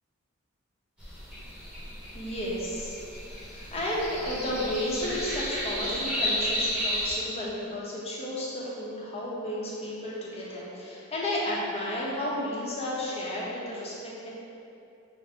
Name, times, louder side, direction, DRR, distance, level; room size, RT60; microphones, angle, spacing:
sound 1, 1.0-7.2, equal, 5° right, 0.9 m, -33 dB
voice 1, 2.1-14.3, left 1 dB, 30° left, -6 dB, 0.7 m, -33 dB
4.9 x 2.0 x 3.3 m, 2.7 s
head